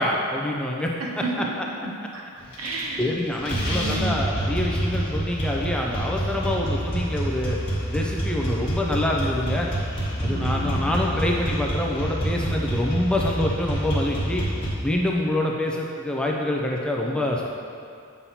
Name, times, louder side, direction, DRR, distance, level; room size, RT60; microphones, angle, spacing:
voice 1, 0.0-0.9 3.0-7.6 7.9-9.7 10.2-14.4 14.8-17.5, left 1 dB, 5° left, -2 dB, 0.4 m, -26 dB
voice 2, 1.0-2.2 2.6-3.1 3.4-4.2 10.2-10.9, right 2 dB, 70° right, -2 dB, 1.0 m, -32 dB
sound 1, 2.5-3.1 3.4-14.7, right 1 dB, 25° left, 1.2 m, -27 dB
8.4 x 5.5 x 2.8 m, 2.4 s
head